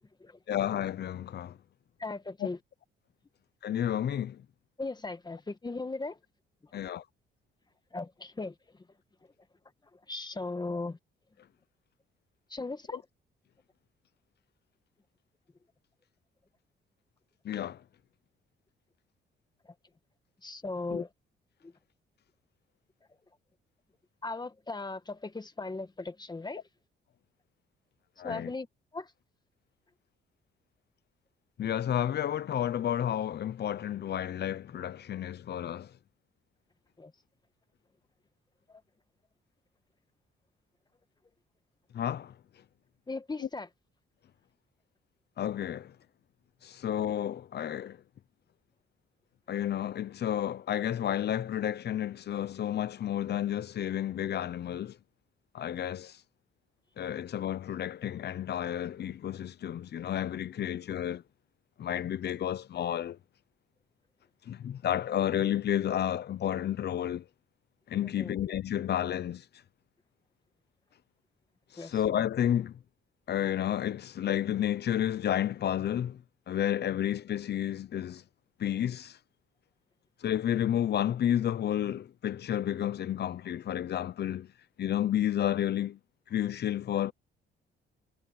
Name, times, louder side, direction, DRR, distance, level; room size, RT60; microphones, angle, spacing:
voice 1, 0.5-1.6 3.6-4.4 6.7-7.0 17.4-17.8 20.9-21.0 28.2-28.5 31.6-35.9 41.9-42.3 45.4-45.9 46.6-48.0 49.5-55.0 55.5-56.2 57.0-61.2 61.8-63.2 64.5-67.2 67.9-69.4 71.8-72.8 73.3-76.2 76.5-78.2 78.6-79.2 80.2-84.5 84.8-86.0 86.3-87.1, left 10 dB, 55° left, 0.9 m, -31 dB
voice 2, 2.0-2.6 4.8-6.2 6.6-6.9 7.9-9.3 9.9-11.0 12.5-13.0 19.6-19.7 20.4-21.1 21.6-21.7 24.2-26.7 28.2-28.7 28.9-29.1 37.0-37.1 38.7-38.8 43.1-43.7 68.0-68.4 71.8-72.0, left 3 dB, 20° left, 1.5 m, -38 dB
cardioid pair, 90°, 20 cm